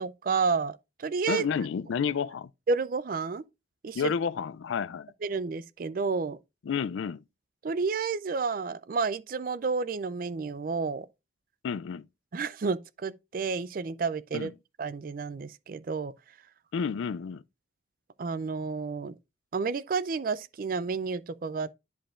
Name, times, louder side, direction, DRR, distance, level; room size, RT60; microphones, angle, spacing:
voice 1, 0.0-1.5 2.7-3.4 3.8-4.1 5.2-6.4 7.6-11.1 12.3-14.5 14.8-16.1 18.2-19.1 19.5-21.7, right 4 dB, 45° right, 0.4 m, -30 dB
voice 2, 1.3-2.5 3.9-5.1 6.7-7.2 11.6-12.1 14.3-14.5 16.7-17.4, left 6 dB, 80° left, 0.4 m, -30 dB
10.5 x 5.2 x 2.4 m
head